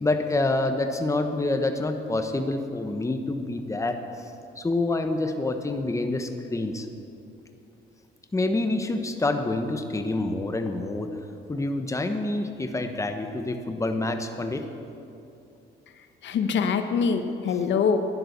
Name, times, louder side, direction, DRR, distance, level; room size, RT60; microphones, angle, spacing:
voice 1, 0.0-4.0 4.6-6.9 8.3-11.1 11.5-14.6, left 2 dB, 15° left, 6 dB, 1.0 m, -27 dB
voice 2, 16.2-18.0, left 6 dB, 70° left, 8 dB, 0.9 m, -24 dB
11.0 x 10.5 x 6.8 m, 2.7 s
cardioid pair, 90°, 20 cm